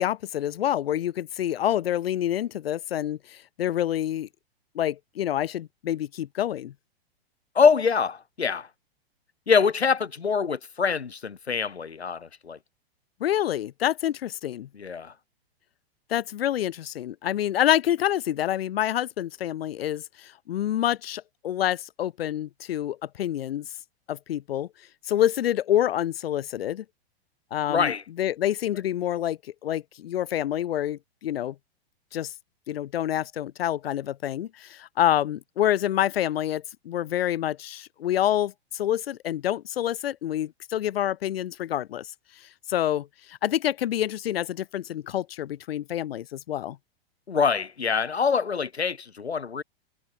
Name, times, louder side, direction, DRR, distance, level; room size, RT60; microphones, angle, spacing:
voice 1, 0.0-3.2 3.6-4.3 4.8-6.7 13.2-14.7 16.1-20.0 20.5-23.7 24.1-24.7 25.1-26.8 27.5-31.5 32.1-32.3 32.7-42.1 42.7-43.1 43.4-46.8, left 11 dB, 70° left, 2.0 m, -27 dB
voice 2, 7.6-8.7 9.5-12.6 14.7-15.1 27.7-28.0 47.3-49.6, left 6 dB, 85° left, 5.3 m, -24 dB
hypercardioid pair, 110°, 31 cm